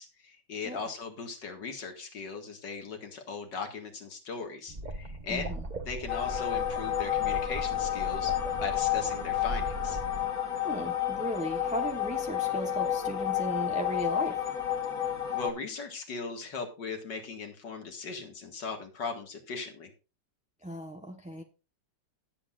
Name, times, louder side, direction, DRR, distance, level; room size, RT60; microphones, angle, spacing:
voice 1, 0.0-5.5 5.9-10.0 15.3-19.9, left 4 dB, 70° left, 4 dB, 2.5 m, -38 dB
sound 1, 4.7-10.2, right 2 dB, 25° right, 1.0 m, -39 dB
voice 2, 5.3-5.6 10.6-14.4 20.6-21.4, equal, 5° right, 3 dB, 0.9 m, -36 dB
sound 2, 6.1-15.5, left 11 dB, 50° left, 2.5 m, -31 dB
18.5 x 8.0 x 2.5 m, 0.31 s
omnidirectional pair, 2.0 m